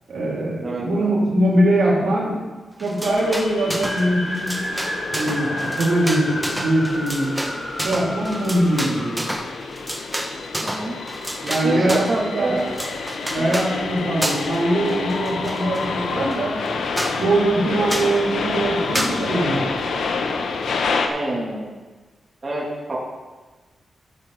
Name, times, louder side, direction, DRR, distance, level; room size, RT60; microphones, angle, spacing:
voice 1, 0.1-2.4 2.8-4.5 5.1-7.3 7.8-9.2 11.4-12.5 13.3-16.6 17.2-19.6, right 1 dB, 75° right, -5 dB, 3.3 m, -22 dB
voice 2, 0.6-1.1 10.6-11.0 11.6-12.8 13.4-13.6 21.1-21.7 22.4-23.0, right 2 dB, 35° right, -5 dB, 2.6 m, -26 dB
sound 1, 2.8-4.1 4.3-12.2 12.6-13.7 14.2-14.6 14.9-15.9 16.3-16.4 16.7-16.8 17.0-17.2 17.9-18.2 18.9-19.2, right 1 dB, 5° right, 1.3 m, -29 dB
sound 2, 3.0-21.1, left 4 dB, 80° left, 0.9 m, -29 dB
sound 3, 3.8-9.3, equal, 15° left, 1.5 m, -32 dB
12.5 x 7.6 x 4.0 m, 1.3 s
cardioid pair, 80°, 0 cm